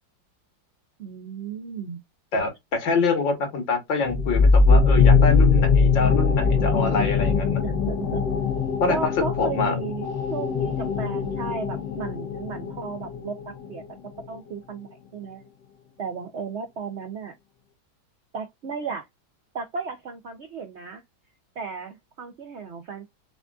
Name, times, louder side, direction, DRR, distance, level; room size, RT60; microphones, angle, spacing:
voice 1, 1.0-2.0 7.6-8.2 8.9-13.8 14.3-15.4 16.0-17.4 18.3-19.1 19.5-21.0 21.6-23.1, right 5 dB, 75° right, 0.6 m, -34 dB
voice 2, 2.3-7.6 8.8-9.8, left 3 dB, 85° left, 2.2 m, -25 dB
sound 1, 4.0-13.4, left 4 dB, 70° left, 1.0 m, -21 dB
5.9 x 2.4 x 2.3 m
omnidirectional pair, 2.0 m